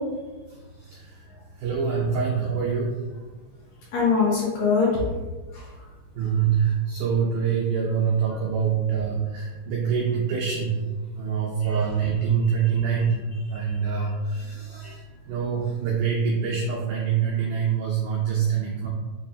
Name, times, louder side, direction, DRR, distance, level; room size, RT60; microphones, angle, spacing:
voice 1, 1.6-2.9 6.2-10.8 11.2-13.2 13.5-14.9 15.3-18.9, right 7 dB, 90° right, -3 dB, 1.8 m, -25 dB
voice 2, 3.9-5.0 5.5-5.6 11.6-12.1 12.6-12.7 13.6-13.8 14.8-14.9, left 5 dB, 70° left, -7 dB, 2.1 m, -24 dB
6.0 x 2.3 x 2.7 m, 1.3 s
omnidirectional pair, 4.2 m